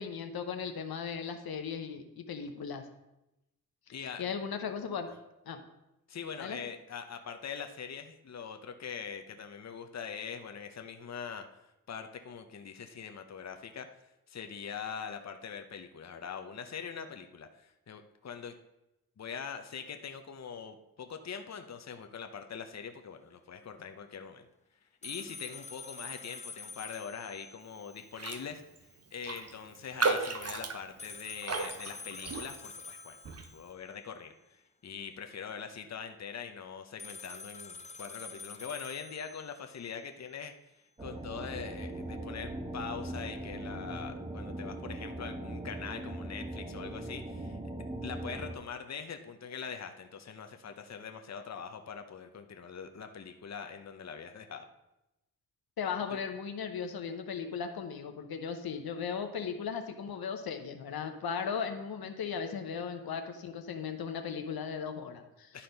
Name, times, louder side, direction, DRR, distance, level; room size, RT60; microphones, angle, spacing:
voice 1, 0.0-2.8 4.2-5.1 5.5-5.6 6.4-6.6 55.8-65.6, left 6 dB, 80° left, 6 dB, 0.9 m, -37 dB
voice 2, 3.9-4.3 6.1-11.4 11.9-13.9 14.3-18.5 19.2-24.5 25.0-28.6 29.1-33.2 33.5-40.5 41.0-54.7 56.1-56.2 65.5-65.6, left 6 dB, 50° left, 6 dB, 0.8 m, -43 dB
sound 1, 25.0-28.1 28.4-28.5 31.0-34.0 37.0-40.0, left 3 dB, 20° left, 0.6 m, -47 dB
Raindrop, 28.1-28.5 28.8-28.9 29.2-32.8 33.2-33.5, right 4 dB, 45° right, 0.9 m, -34 dB
sound 2, 41.0-48.5, right 1 dB, 15° right, 0.8 m, -40 dB
11.5 x 4.2 x 5.2 m, 0.92 s
cardioid pair, 65°, 36 cm